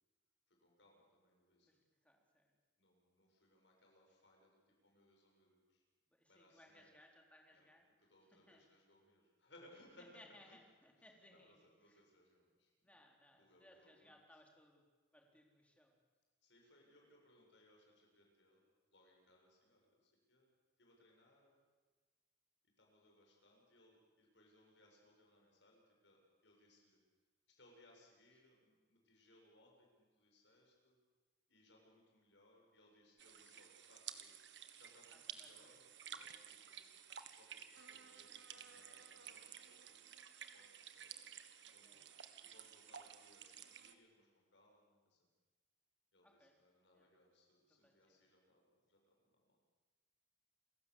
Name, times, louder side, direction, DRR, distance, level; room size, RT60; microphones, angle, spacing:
voice 1, 0.5-1.7 2.8-5.8 6.3-6.9 7.5-7.7 8.0-10.6 11.0-13.0 13.3-14.2 16.4-18.6 18.9-20.5 20.8-21.6 22.6-27.0 27.5-31.0 31.5-34.4 34.7-41.2 41.7-42.0 42.4-45.3 46.1-49.6, left 1 dB, 70° left, 0 dB, 7.8 m, -69 dB
voice 2, 1.7-2.5 6.1-8.1 8.5-8.6 10.1-11.5 11.8-12.0 12.8-14.8 15.1-16.0 35.1-35.7 36.1-36.3 41.8-42.0 46.2-46.5 47.0-47.1 47.7-48.2, left 1 dB, 5° left, 1 dB, 3.9 m, -66 dB
sound 1, 33.2-43.9, right 9 dB, 65° right, 1.6 m, -54 dB
28.5 x 16.5 x 8.4 m, 1.4 s
head